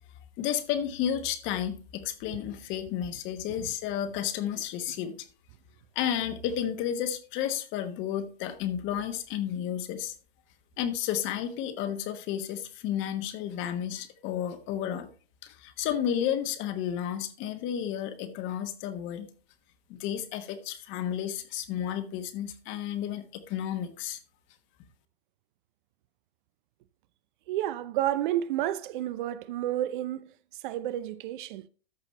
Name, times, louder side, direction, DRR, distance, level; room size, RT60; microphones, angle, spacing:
voice 1, 0.4-5.3 5.9-10.1 10.8-15.1 15.4-19.3 19.9-24.2, left 10 dB, 40° left, 1.3 m, -32 dB
voice 2, 27.5-30.3 30.6-31.7, right 13 dB, 50° right, 0.6 m, -30 dB
13.5 x 5.7 x 3.2 m
hypercardioid pair, 110°, 31 cm